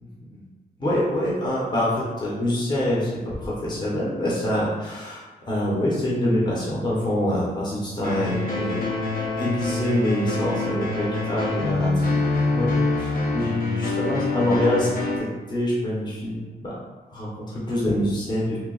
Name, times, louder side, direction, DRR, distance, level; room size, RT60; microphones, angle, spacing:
voice 1, 0.8-8.9 9.4-12.2 12.5-16.4 16.6-16.7 17.1-18.6, left 1 dB, 25° left, -6 dB, 0.7 m, -25 dB
sound 1, 8.0-15.2, left 3 dB, 65° left, 0.7 m, -25 dB
2.8 x 2.2 x 3.8 m, 1.3 s
wide cardioid pair, 150°, 16 cm